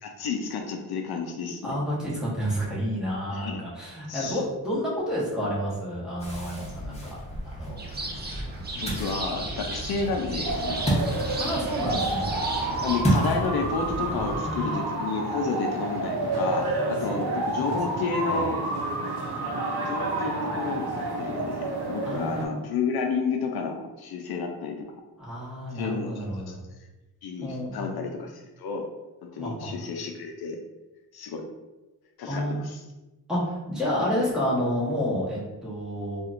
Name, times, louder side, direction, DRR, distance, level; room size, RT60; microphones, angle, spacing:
voice 1, 0.0-1.8 3.3-3.6 4.1-4.4 8.7-10.8 12.8-18.6 19.9-24.9 25.7-26.6 27.2-28.9 29.2-30.6 31.1-31.4 32.2-32.8, left 5 dB, 75° left, 3 dB, 0.5 m, -31 dB
voice 2, 1.6-7.2 7.4-7.8 10.9-11.0 11.4-12.3 14.0-14.9 17.1-17.2 17.7-17.8 18.2-18.5 22.0-22.6 25.2-26.6 27.4-27.9 29.4-29.7 32.3-32.6 33.3-36.2, equal, ahead, -8 dB, 1.1 m, -30 dB
Ocean, 6.2-14.4, right 1 dB, 15° left, 0.9 m, -31 dB
sound 1, 7.8-13.0, right 2 dB, 25° right, 0.5 m, -35 dB
sound 2, 10.4-22.5, right 2 dB, 75° right, 0.7 m, -30 dB
4.2 x 2.5 x 2.5 m, 1.1 s
wide cardioid pair, 140°, 38 cm